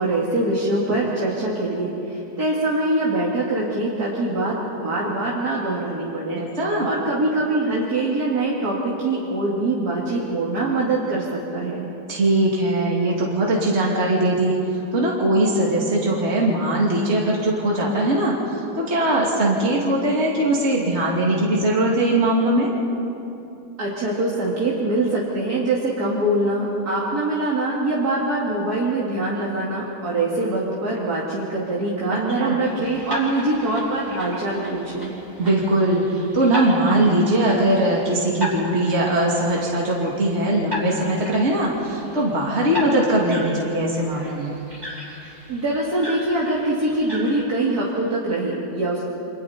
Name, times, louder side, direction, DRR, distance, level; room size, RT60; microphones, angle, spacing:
voice 1, 0.0-6.4 6.8-11.9 23.8-35.2 45.5-49.0, right 2 dB, 65° right, -5 dB, 2.9 m, -23 dB
voice 2, 6.3-6.9 12.1-14.6 14.9-22.7 32.4-32.6 35.4-44.6, right 1 dB, 40° right, -3 dB, 2.7 m, -20 dB
sound 1, 32.6-47.4, equal, 10° right, 4.5 m, -36 dB
29.0 x 25.0 x 4.3 m, 2.8 s
omnidirectional pair, 1.8 m